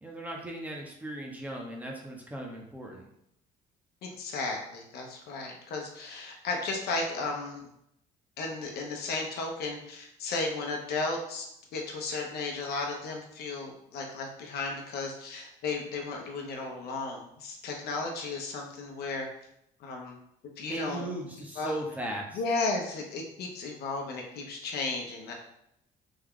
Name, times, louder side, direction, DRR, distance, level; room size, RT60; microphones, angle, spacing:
voice 1, 0.0-3.1 20.7-22.4, right 1 dB, 10° right, 0 dB, 0.7 m, -37 dB
voice 2, 4.0-7.7 8.4-11.5 11.7-19.3 19.8-20.2 20.6-21.0 21.5-21.7 22.3-25.3, left 3 dB, 70° left, 1 dB, 0.8 m, -34 dB
3.6 x 2.2 x 3.6 m, 0.78 s
cardioid pair, 110°, 17 cm